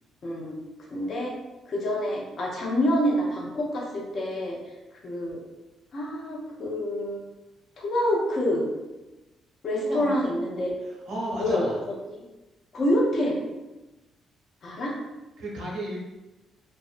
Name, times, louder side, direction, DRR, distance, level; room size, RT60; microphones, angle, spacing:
voice 1, 0.2-0.6 0.9-1.4 1.7-5.4 5.9-7.2 7.8-8.7 9.6-10.7 11.4-12.2 12.7-13.4 14.6-15.0, equal, 55° left, -2 dB, 0.6 m, -27 dB
voice 2, 9.8-10.3 11.1-11.8 15.4-16.0, right 1 dB, 85° right, -4 dB, 0.7 m, -33 dB
2.5 x 2.1 x 2.4 m, 1.0 s
cardioid pair, 90°, 0 cm